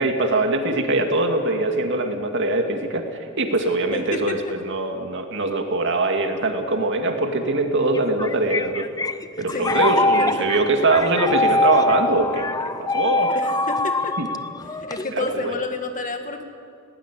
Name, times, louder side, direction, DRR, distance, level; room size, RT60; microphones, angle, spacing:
voice 1, 0.0-3.1 3.4-8.9 9.4-12.5 12.8-13.3 14.2-14.3 15.1-15.5, right 2 dB, 60° right, 4 dB, 2.4 m, -22 dB
voice 2, 3.6-4.5 9.5-9.9 10.2-10.3 13.3-14.2 14.7-16.4, left 2 dB, 40° left, 5 dB, 2.0 m, -30 dB
sound 1, 7.9-15.5, left 2 dB, 15° left, 0.7 m, -23 dB
19.5 x 18.0 x 10.0 m, 2.4 s
head